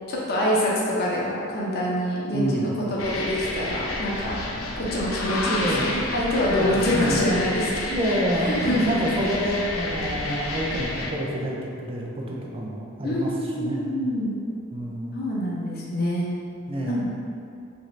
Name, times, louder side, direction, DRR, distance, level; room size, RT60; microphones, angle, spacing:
voice 1, 0.1-0.7 1.0-4.4 4.8-7.9 8.3-9.1 13.0-14.3 15.1-16.3 16.9-17.1, left 1 dB, 50° left, -5 dB, 0.6 m, -26 dB
voice 2, 2.3-2.9 5.5-5.9 6.5-7.2 7.9-13.3 13.6-13.9 14.7-15.1 16.7-17.0, right 1 dB, 30° right, -2 dB, 0.4 m, -28 dB
sound 1, 3.0-11.1, left 2 dB, 90° left, 0.5 m, -30 dB
3.0 x 2.6 x 3.1 m, 2.4 s
head